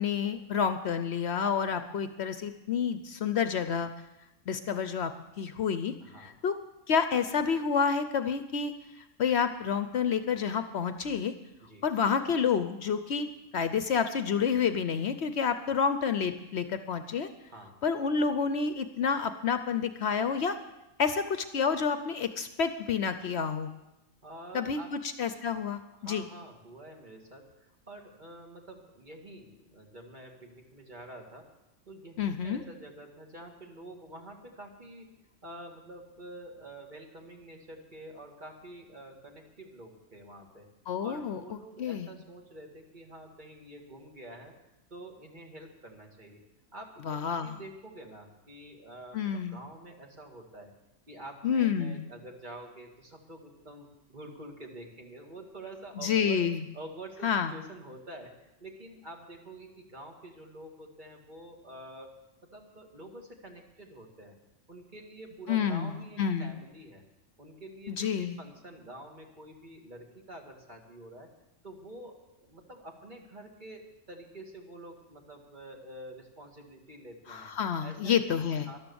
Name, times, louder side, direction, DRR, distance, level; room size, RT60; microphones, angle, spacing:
voice 1, 0.0-3.9 4.5-6.6 6.9-8.7 9.2-11.3 11.8-17.3 17.8-20.6 21.0-23.7 24.5-26.2 32.2-32.6 40.9-41.4 41.8-42.1 47.1-47.6 49.1-49.6 51.4-52.0 56.0-56.6 57.2-57.5 65.5-66.5 67.9-68.4 77.3-78.7, left 6 dB, 60° left, 10 dB, 0.9 m, -29 dB
voice 2, 6.0-6.4 11.6-11.9 15.6-15.8 17.5-17.7 24.2-24.9 25.9-31.5 31.9-40.7 41.0-44.6 44.9-46.4 46.7-50.7 51.1-56.5 56.7-64.4 64.7-67.0 67.4-71.3 71.6-77.5 77.8-78.1 78.6-78.8, right 1 dB, 35° right, 2 dB, 2.0 m, -47 dB
13.0 x 11.5 x 6.9 m, 0.96 s
omnidirectional pair, 1.3 m